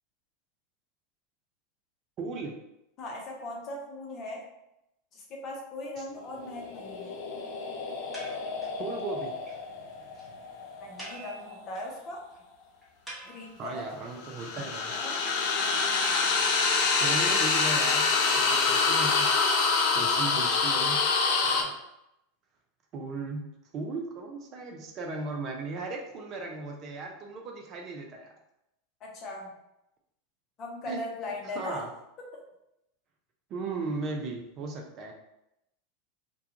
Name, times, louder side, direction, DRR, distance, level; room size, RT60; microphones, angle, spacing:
voice 1, 2.2-2.5 6.0-6.1 8.8-9.3 13.6-14.9 17.0-18.1 18.3-19.3 19.9-21.0 21.4-21.7 22.9-23.4 23.7-28.3 30.9-31.0 31.4-31.9 33.5-35.1, right 3 dB, 45° right, 2 dB, 0.5 m, -36 dB
voice 2, 3.0-4.4 5.1-7.1 10.8-12.2 13.2-13.9 14.9-15.3 29.0-29.5 30.6-31.8 32.3-32.4, left 1 dB, 40° left, -1 dB, 0.8 m, -39 dB
sound 1, 6.5-11.6 14.1-21.6, left 4 dB, 60° left, 0.4 m, -27 dB
sound 2, 8.1-8.8 9.2-9.3 9.5-9.6 9.9-10.0 10.1-10.3 11.0-12.0 12.3-12.4 12.8-13.8 16.1-18.0, right 1 dB, ahead, 1.0 m, -46 dB
2.3 x 2.2 x 2.8 m, 0.85 s
hypercardioid pair, 90°, 0 cm